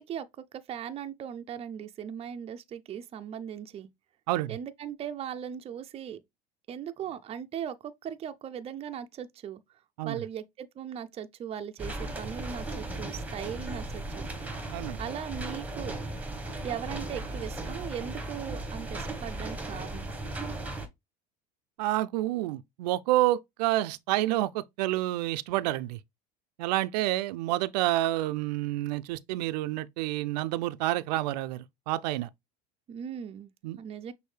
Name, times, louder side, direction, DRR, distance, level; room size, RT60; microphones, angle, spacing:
voice 1, 0.0-3.9 4.5-6.2 6.7-9.6 10.0-14.3 15.0-15.9 16.6-20.1 32.9-33.5 33.8-34.1, right 9 dB, 30° right, 0.5 m, -38 dB
voice 2, 4.3-4.6 10.0-10.2 14.7-15.0 21.8-26.0 26.6-32.3 33.6-33.8, right 16 dB, 80° right, 0.5 m, -29 dB
sound 1, 11.8-20.9, right 2 dB, 5° right, 1.2 m, -36 dB
6.2 x 2.6 x 3.3 m
supercardioid pair, 100°, 21 cm